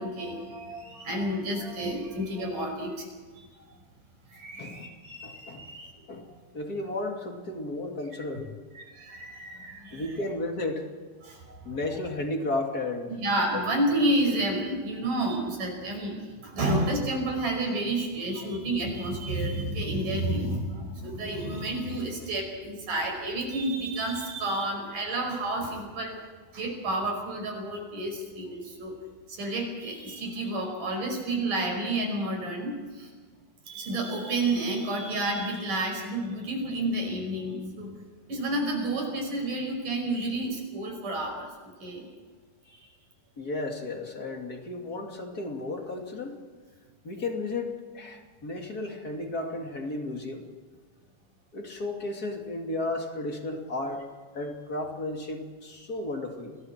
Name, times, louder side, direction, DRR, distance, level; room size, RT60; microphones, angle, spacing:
voice 1, 0.0-3.1 3.4-3.5 4.3-5.9 8.7-10.1 11.2-11.7 13.1-26.2 26.5-28.9 29.3-33.1 33.7-38.0 38.3-41.5 41.8-42.0, right 1 dB, 85° right, 2 dB, 6.8 m, -30 dB
voice 2, 5.2-5.6 6.1-6.3 6.5-8.5 9.9-10.9 11.6-13.2 13.5-13.6 43.4-46.4 47.0-50.4 51.5-54.1 54.3-56.6, left 2 dB, 30° left, 2 dB, 2.7 m, -33 dB
30.0 x 22.5 x 4.4 m, 1.5 s
omnidirectional pair, 3.6 m